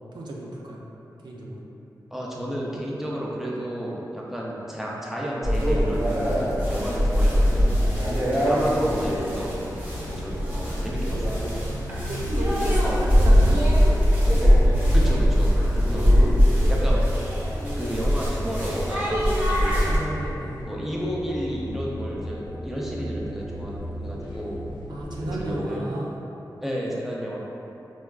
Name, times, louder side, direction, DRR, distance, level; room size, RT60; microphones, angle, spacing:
voice 1, 0.1-0.8 1.2-1.6 8.0-8.3 11.6-13.7 15.8-16.2 19.8-20.6 24.9-26.1, right 1 dB, 85° right, -3 dB, 0.5 m, -34 dB
voice 2, 2.1-6.4 6.7-7.8 8.5-9.7 10.0-11.4 14.9-16.1 16.7-17.1 17.8-20.1 20.6-24.7 25.2-25.9 26.6-27.4, equal, 5° right, -4 dB, 0.4 m, -32 dB
sound 1, 5.4-20.0, equal, 20° right, 0.9 m, -21 dB
sound 2, 7.6-25.5, equal, 80° left, 0.4 m, -36 dB
4.3 x 2.3 x 2.2 m, 2.9 s
wide cardioid pair, 135°, 7 cm